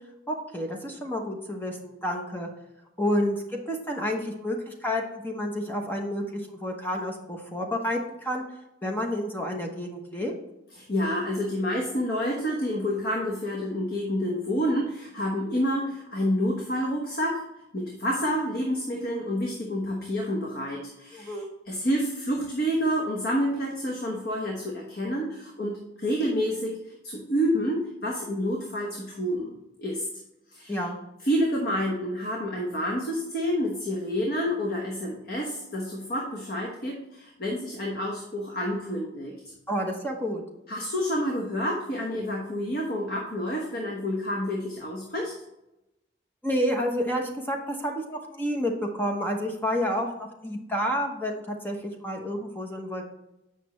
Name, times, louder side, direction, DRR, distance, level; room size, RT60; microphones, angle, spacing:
voice 1, 0.3-2.5 3.0-8.4 8.8-10.3 21.1-21.5 30.7-31.0 39.7-40.4 46.4-53.0, equal, 10° left, 1 dB, 1.0 m, -30 dB
voice 2, 10.8-17.4 17.7-21.4 21.7-26.8 27.0-30.1 30.5-30.8 31.2-39.3 40.7-45.3, equal, 50° left, -1 dB, 1.2 m, -28 dB
8.2 x 5.8 x 3.1 m, 0.91 s
head